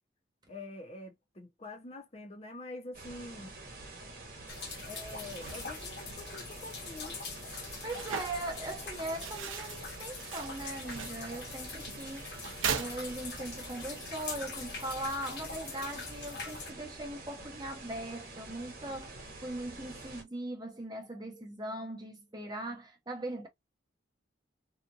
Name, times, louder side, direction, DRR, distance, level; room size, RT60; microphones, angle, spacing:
voice 1, 0.5-3.5 4.9-7.1, left 2 dB, 30° left, 0.6 m, -46 dB
sound 1, 2.9-20.2, right 2 dB, 50° right, 1.0 m, -47 dB
sound 2, 4.5-16.7, left 4 dB, 55° left, 1.1 m, -44 dB
sound 3, 5.2-13.6, right 7 dB, 90° right, 0.5 m, -41 dB
voice 2, 7.8-23.5, right 1 dB, 20° right, 0.7 m, -40 dB
2.8 x 2.4 x 2.4 m
head